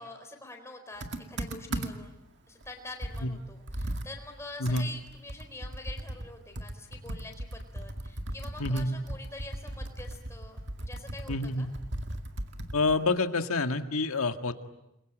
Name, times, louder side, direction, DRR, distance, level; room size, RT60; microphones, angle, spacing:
voice 1, 0.0-2.2 2.5-10.6 10.9-11.7, left 2 dB, 15° left, 4 dB, 4.2 m, -46 dB
Computer keyboard, 1.0-2.2 2.6-2.7 3.0-6.3 6.6-13.0, right 1 dB, 55° right, 2.1 m, -38 dB
voice 2, 8.6-9.0 11.3-11.7 12.7-14.5, left 2 dB, 85° left, 7 dB, 1.9 m, -28 dB
29.5 x 22.5 x 9.0 m, 0.87 s
head